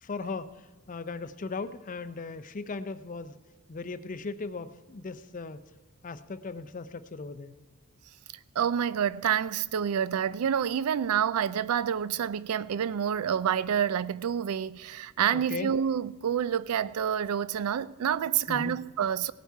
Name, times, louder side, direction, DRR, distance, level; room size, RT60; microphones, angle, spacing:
voice 1, 0.0-0.5 0.9-3.3 3.7-5.6 6.0-7.6 15.3-15.7 18.5-18.8, left 4 dB, 35° left, 0.5 m, -37 dB
voice 2, 8.6-19.3, right 8 dB, 85° right, 0.4 m, -28 dB
17.5 x 8.2 x 4.6 m
head